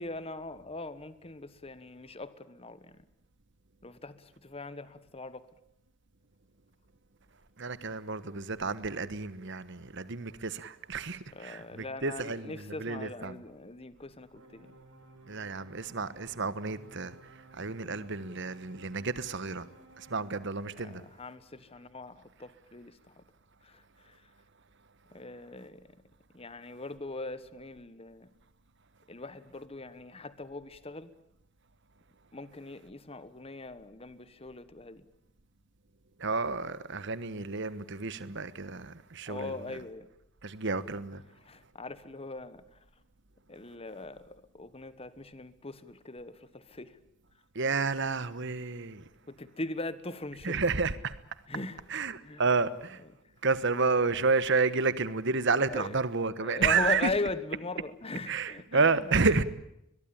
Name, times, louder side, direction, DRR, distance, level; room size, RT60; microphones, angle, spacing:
voice 1, 0.0-3.0 3.8-5.5 11.3-14.7 20.7-23.2 23.6-24.2 25.1-25.9 26.3-28.3 29.1-31.1 32.3-35.0 39.3-40.1 41.4-42.6 43.5-47.0 49.3-50.6 51.5-51.8 52.2-52.4 53.0-53.1 55.7-56.0 56.4-59.4, left 2 dB, 30° left, 1.3 m, -40 dB
voice 2, 7.6-13.4 15.3-17.1 17.5-19.6 20.0-21.0 36.2-39.5 40.4-41.2 47.5-49.0 50.4-51.2 51.9-53.0 53.4-57.1 58.3-59.4, right 4 dB, 60° right, 1.3 m, -30 dB
sound 1, 14.3-20.2, right 2 dB, 80° right, 5.7 m, -56 dB
22.5 x 22.0 x 8.8 m
head